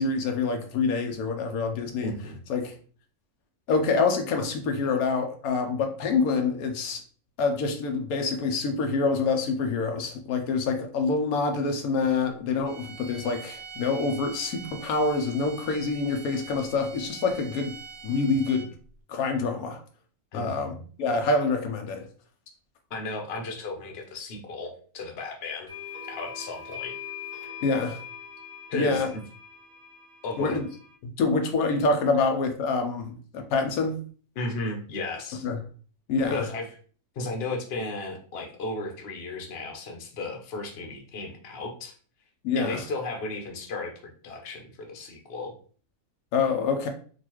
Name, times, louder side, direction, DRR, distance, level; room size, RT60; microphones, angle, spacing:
voice 1, 0.0-2.1 2.5-2.7 3.7-7.0 7.4-17.8 18.0-18.7 19.1-19.8 20.3-22.1 27.6-28.0 28.7-29.1 30.4-30.6 31.0-34.0 35.4-35.6 36.1-36.5 42.4-42.8 46.3-46.9, left 4 dB, 80° left, 1.1 m, -26 dB
voice 2, 2.0-2.4 20.3-20.8 22.9-25.7 26.2-27.0 28.7-29.2 30.2-30.6 34.4-35.5 36.3-36.7 37.1-41.9 42.6-45.5, left 2 dB, 50° left, 0.9 m, -34 dB
sound 1, 12.6-18.9, right 6 dB, 60° right, 0.6 m, -44 dB
sound 2, 25.7-30.9, left 8 dB, 25° right, 0.9 m, -42 dB
3.9 x 2.5 x 2.9 m
omnidirectional pair, 1.5 m